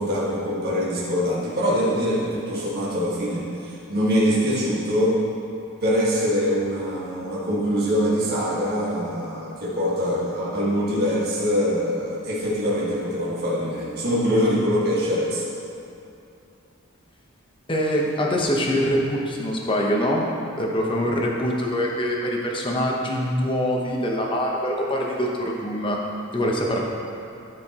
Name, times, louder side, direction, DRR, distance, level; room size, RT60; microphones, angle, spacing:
voice 1, 0.0-5.2 5.8-15.5, equal, 50° right, -8 dB, 1.6 m, -23 dB
voice 2, 17.7-20.2 20.6-26.0 26.3-26.8, equal, 25° left, -1 dB, 0.9 m, -24 dB
13.0 x 5.0 x 2.9 m, 2.7 s
head